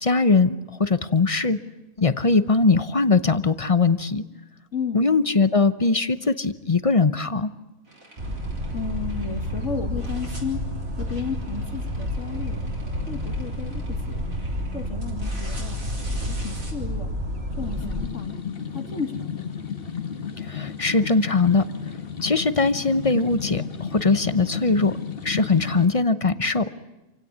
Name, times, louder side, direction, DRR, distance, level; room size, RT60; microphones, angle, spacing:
voice 1, 0.0-1.6 2.0-4.2 4.9-7.5 20.4-21.6 22.2-25.0 25.2-26.7, left 4 dB, 30° left, 13 dB, 0.8 m, -21 dB
voice 2, 4.7-5.0 8.7-10.6 11.0-12.6 13.1-14.2 14.7-15.8 16.3-17.1 17.6-18.4 18.7-19.5, left 6 dB, 60° left, 4 dB, 2.2 m, -33 dB
sound 1, 7.9-9.7 10.0-16.7, right 1 dB, 75° right, 5.4 m, -46 dB
sound 2, 8.2-18.1, equal, 45° right, 2.4 m, -30 dB
sound 3, 17.5-25.8, left 7 dB, 45° left, 1.5 m, -33 dB
28.0 x 17.0 x 9.7 m, 1.1 s
omnidirectional pair, 1.4 m